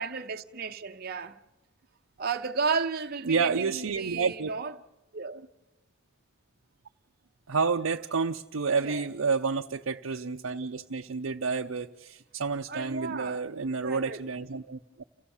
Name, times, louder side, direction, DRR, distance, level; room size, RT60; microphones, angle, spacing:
voice 1, 0.0-1.4 2.2-4.7 5.1-5.4 8.8-9.1 12.7-13.4 13.8-14.2, right 5 dB, 50° right, 0.8 m, -33 dB
voice 2, 3.2-4.5 7.5-15.0, right 5 dB, 90° right, 0.6 m, -30 dB
29.5 x 15.5 x 7.2 m
head